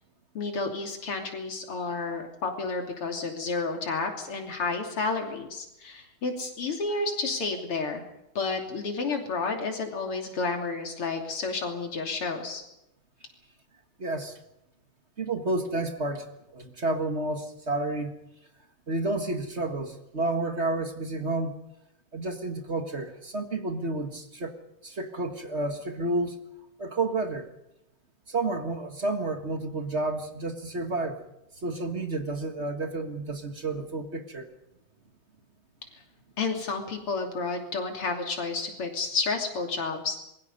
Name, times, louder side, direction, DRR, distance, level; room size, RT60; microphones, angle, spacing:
voice 1, 0.4-8.0 8.4-12.6 36.4-40.2, left 4 dB, 85° left, 3 dB, 3.9 m, -31 dB
voice 2, 14.0-14.4 15.2-18.2 18.9-21.5 22.1-24.6 24.8-26.4 26.8-27.5 28.3-31.2 31.6-34.5, right 2 dB, 35° right, 6 dB, 1.8 m, -30 dB
26.5 x 22.5 x 5.4 m, 0.87 s
omnidirectional pair, 2.4 m